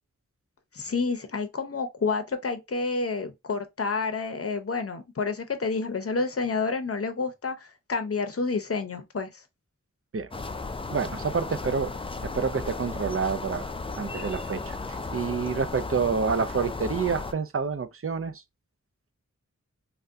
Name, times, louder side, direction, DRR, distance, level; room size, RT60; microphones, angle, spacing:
voice 1, 0.7-9.3, left 4 dB, 50° left, 0.7 m, -29 dB
sound 1, 10.3-17.3, left 3 dB, 20° left, 0.3 m, -35 dB
voice 2, 10.9-11.9 12.2-13.7 14.0-18.4, right 5 dB, 45° right, 0.5 m, -28 dB
3.5 x 2.2 x 2.6 m
wide cardioid pair, 45°, 31 cm